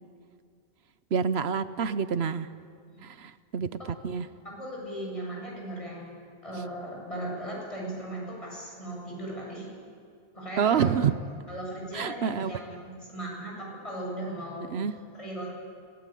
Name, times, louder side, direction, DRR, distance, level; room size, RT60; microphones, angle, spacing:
voice 1, 1.1-2.5 3.0-4.3 10.6-11.1 11.9-12.5 14.7-14.9, right 7 dB, 80° right, 13 dB, 1.1 m, -27 dB
voice 2, 4.4-6.1 6.4-9.7 10.3-10.9 11.5-14.7 15.1-15.5, right 1 dB, 30° left, -3 dB, 7.9 m, -37 dB
25.5 x 18.0 x 9.2 m, 2.2 s
omnidirectional pair, 1.1 m